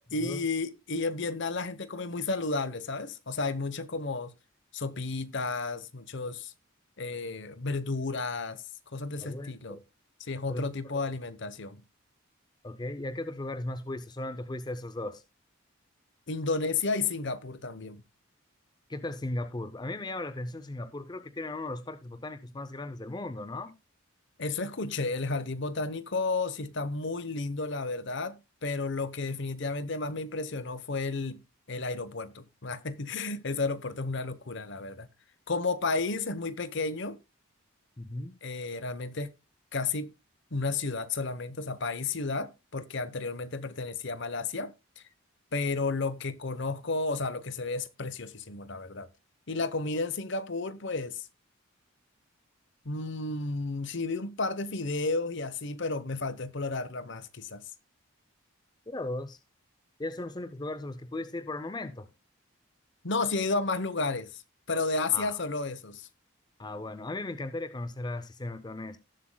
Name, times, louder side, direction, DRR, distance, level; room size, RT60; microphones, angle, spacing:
voice 1, 0.1-4.3 4.7-6.5 7.0-8.6 8.9-9.8 10.2-11.8 16.3-18.0 24.4-31.4 31.7-35.1 35.5-37.2 38.4-39.3 39.7-40.1 40.5-45.0 45.5-49.1 49.5-51.3 52.8-57.6 63.0-64.4 64.7-66.1, left 3 dB, 55° left, 0.9 m, -32 dB
voice 2, 9.2-9.8 10.5-11.0 12.6-15.2 18.9-23.8 38.0-38.4 58.9-59.4 60.0-62.1 65.1-65.4 66.6-69.0, left 2 dB, 20° left, 0.5 m, -37 dB
18.0 x 7.5 x 2.2 m
head